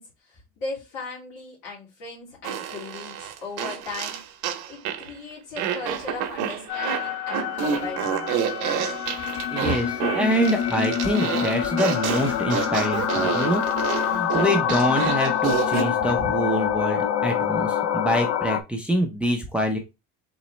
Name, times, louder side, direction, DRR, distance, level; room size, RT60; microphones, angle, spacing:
voice 1, 0.0-4.2 4.7-8.3, left 3 dB, 70° left, -5 dB, 2.7 m, -38 dB
Fart, 2.4-5.1 5.6-15.9, right 8 dB, 65° right, 0.8 m, -29 dB
sound 1, 6.7-18.6, left 10 dB, 50° left, 0.5 m, -26 dB
voice 2, 9.5-13.6 14.1-19.8, equal, 5° right, 3 dB, 0.5 m, -25 dB
4.0 x 3.0 x 3.0 m, 0.25 s
cardioid pair, 145°, 33 cm